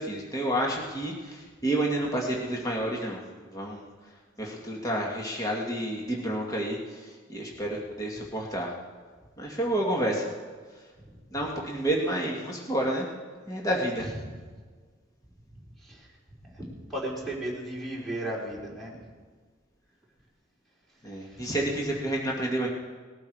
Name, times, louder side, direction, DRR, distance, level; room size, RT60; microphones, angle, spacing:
voice 1, 0.0-3.9 4.4-8.7 9.4-10.3 11.3-13.1 13.5-14.1 21.0-22.7, right 1 dB, 20° left, -2 dB, 1.9 m, -30 dB
voice 2, 16.9-19.0 21.3-21.4, right 1 dB, ahead, -5 dB, 3.9 m, -35 dB
19.5 x 12.0 x 4.8 m, 1.5 s
head